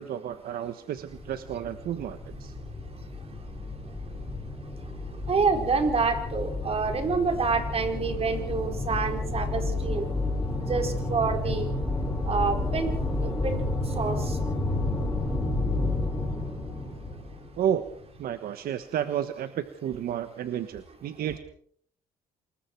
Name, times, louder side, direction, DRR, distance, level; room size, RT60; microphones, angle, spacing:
voice 1, 0.0-2.5 17.6-17.8 18.2-21.4, right 10 dB, 65° right, 10 dB, 1.3 m, -31 dB
sound 1, 1.1-18.1, left 2 dB, 10° left, 6.5 m, -31 dB
voice 2, 5.3-10.1 10.7-11.7 12.3-12.9 13.2-13.6 14.0-14.4, right 4 dB, 35° right, 4 dB, 4.4 m, -27 dB
27.0 x 21.5 x 4.6 m, 0.62 s
cardioid pair, 115°, 16 cm